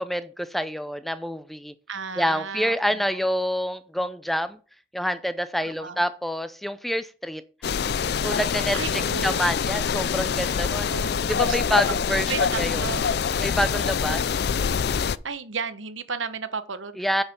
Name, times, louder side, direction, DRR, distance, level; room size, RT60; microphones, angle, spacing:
voice 1, 0.0-1.7 2.2-4.6 4.9-7.4 8.2-10.9 11.3-12.3 12.6-12.9 13.4-14.2 17.0-17.2, equal, ahead, 0.5 m, -27 dB
voice 2, 1.9-3.2 5.6-6.0 8.7-9.4 10.9-11.6 12.2-13.1 15.2-17.0, right 5 dB, 90° right, 1.1 m, -34 dB
sound 1, 7.6-15.2, left 6 dB, 55° left, 0.4 m, -25 dB
9.3 x 5.8 x 6.8 m
head